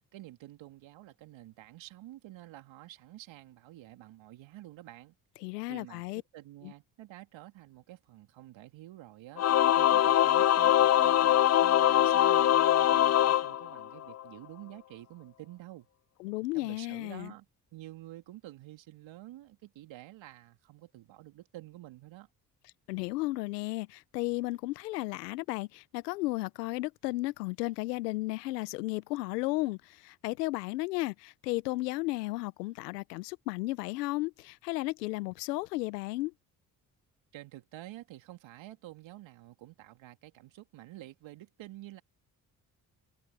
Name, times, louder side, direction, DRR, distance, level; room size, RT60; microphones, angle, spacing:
voice 1, 0.1-5.1 5.7-15.9 16.5-17.4 17.7-22.3 37.3-42.0, right 15 dB, 70° right, 3.1 m, -49 dB
voice 2, 5.4-6.2 6.6-6.7 16.2-17.3 22.9-36.3, left 20 dB, 90° left, 0.9 m, -34 dB
Singing / Musical instrument, 9.4-14.2, left 12 dB, 35° left, 0.5 m, -23 dB
hypercardioid pair, 50°, 47 cm